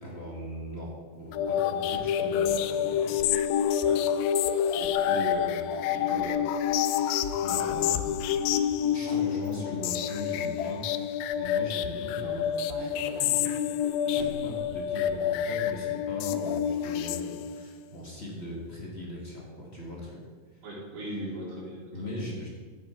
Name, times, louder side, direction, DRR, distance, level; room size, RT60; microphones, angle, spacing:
voice 1, 0.0-3.2 4.5-4.9 6.8-8.2 8.9-12.5 12.7-13.7 14.0-20.2 20.5-20.6 21.9-22.5, left 1 dB, 35° left, -3 dB, 1.0 m, -40 dB
sound 1, 1.3-17.8, left 9 dB, 85° left, 2.1 m, -28 dB
voice 2, 4.8-6.4 9.5-9.6 20.6-22.2, right 1 dB, 55° right, -3 dB, 3.7 m, -39 dB
sound 2, 9.4-9.5 10.9-11.2 11.9-12.0 12.2-13.6 13.9-14.7 15.7-15.8, right 3 dB, 85° right, 1.5 m, -43 dB
13.0 x 8.4 x 4.6 m, 1.5 s
omnidirectional pair, 4.7 m